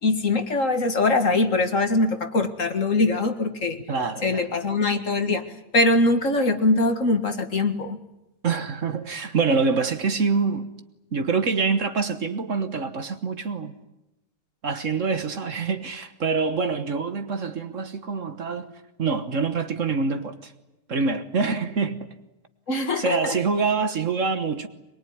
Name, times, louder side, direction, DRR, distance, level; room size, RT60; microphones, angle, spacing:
voice 1, 0.0-3.8 4.2-5.4 5.7-8.0 22.7-23.4, left 2 dB, 50° left, 2.1 m, -22 dB
voice 2, 3.9-4.5 8.4-10.7 11.1-13.8 14.6-18.7 19.0-20.5 20.9-22.1 23.0-24.7, right 4 dB, 50° right, 1.6 m, -25 dB
23.5 x 22.5 x 9.5 m
omnidirectional pair, 1.7 m